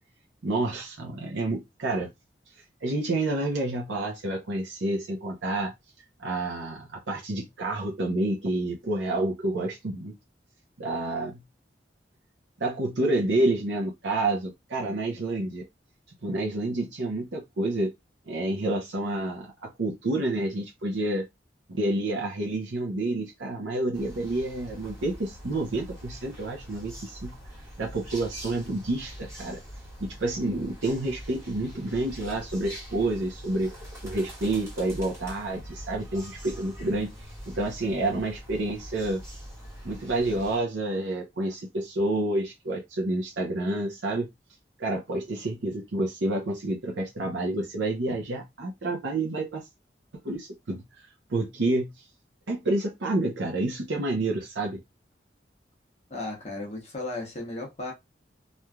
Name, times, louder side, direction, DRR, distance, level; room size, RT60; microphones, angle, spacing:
voice 1, 0.4-2.1 2.8-5.7 6.2-10.2 10.8-11.4 12.6-15.7 16.2-17.9 18.3-21.3 21.7-27.3 27.8-29.6 30.0-33.7 34.0-37.1 37.5-39.2 39.8-44.3 44.8-49.7 50.2-50.8 51.3-51.9 52.5-54.8, right 2 dB, 90° right, 0.7 m, -29 dB
sound 1, 23.9-40.6, equal, 15° right, 1.6 m, -43 dB
voice 2, 56.1-57.9, left 2 dB, 40° left, 0.9 m, -35 dB
3.1 x 2.5 x 2.2 m
head